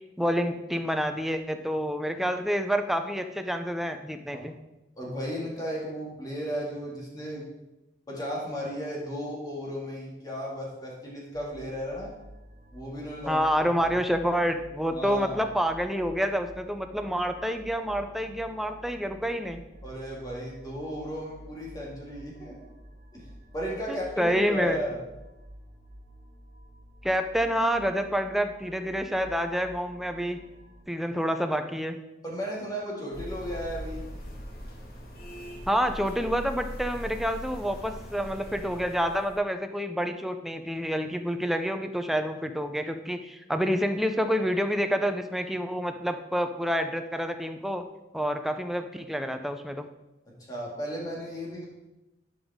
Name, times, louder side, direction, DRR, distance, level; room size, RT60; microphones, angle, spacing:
voice 1, 0.0-4.5 13.3-19.6 23.9-24.8 27.0-30.4 30.9-32.0 35.7-47.9 48.1-49.9, equal, ahead, 6 dB, 0.5 m, -28 dB
voice 2, 5.0-7.5 8.1-12.1 12.7-13.9 14.9-15.5 19.8-22.6 23.1-23.3 23.5-25.0 32.2-34.0 50.3-51.6, equal, 20° left, -4 dB, 2.1 m, -35 dB
sound 1, 11.3-30.8, equal, 40° right, 1.3 m, -50 dB
sound 2, 33.1-39.4, equal, 55° left, 1.5 m, -40 dB
11.0 x 5.3 x 3.6 m, 0.96 s
head